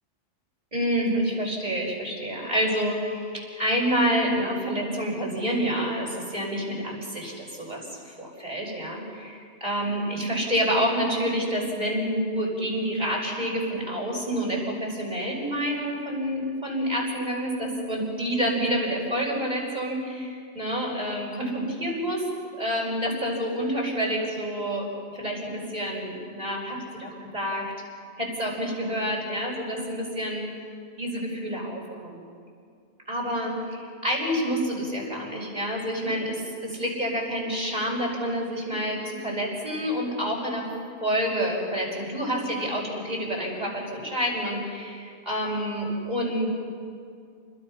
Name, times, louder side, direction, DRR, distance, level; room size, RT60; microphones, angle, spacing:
voice 1, 0.7-22.2 22.6-24.8 25.1-27.6 28.2-30.5 31.0-32.2 33.1-40.7 41.0-46.5, equal, 35° right, -3 dB, 6.1 m, -28 dB
30.0 x 21.5 x 5.7 m, 2.3 s
omnidirectional pair, 1.2 m